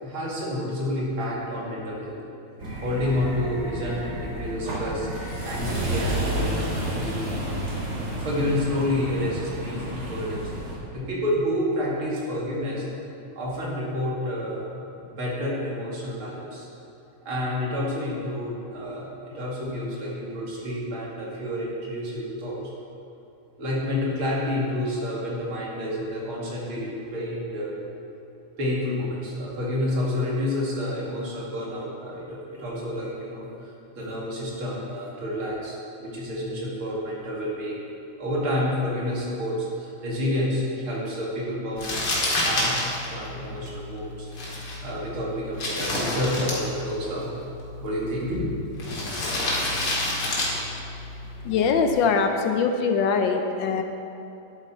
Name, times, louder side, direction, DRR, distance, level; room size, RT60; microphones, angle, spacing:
voice 1, 0.0-2.2 2.8-5.1 5.4-7.2 8.2-10.5 10.9-12.8 13.4-14.7 15.0-16.6 17.3-22.6 23.6-27.7 28.6-37.8 38.2-42.7 43.1-44.3 44.8-47.3 47.8-48.5, left 1 dB, 85° right, -5 dB, 3.0 m, -29 dB
sound 1, 2.6-10.8, right 1 dB, 55° right, 2.7 m, -30 dB
Crumpling crinkling, 41.8-51.9, left 1 dB, 60° left, 2.5 m, -30 dB
voice 2, 51.4-53.8, left 5 dB, 75° left, 6 dB, 1.3 m, -22 dB
10.5 x 8.1 x 4.4 m, 2.9 s
omnidirectional pair, 2.3 m